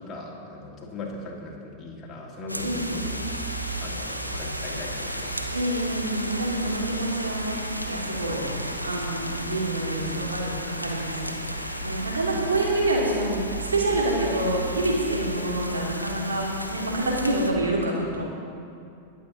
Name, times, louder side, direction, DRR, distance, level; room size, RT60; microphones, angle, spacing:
voice 1, 0.0-3.1 3.8-5.4, left 2 dB, 25° left, -3 dB, 2.1 m, -39 dB
sound 1, 2.5-17.5, equal, 90° left, 0.8 m, -33 dB
voice 2, 2.6-3.3 5.5-7.6 7.8-8.4 8.8-10.5 10.8-11.3 11.8-16.4 16.7-18.2, right 2 dB, 70° right, -3 dB, 2.7 m, -27 dB
21.0 x 7.8 x 4.0 m, 2.5 s
figure-of-eight pair, 90°, 0 cm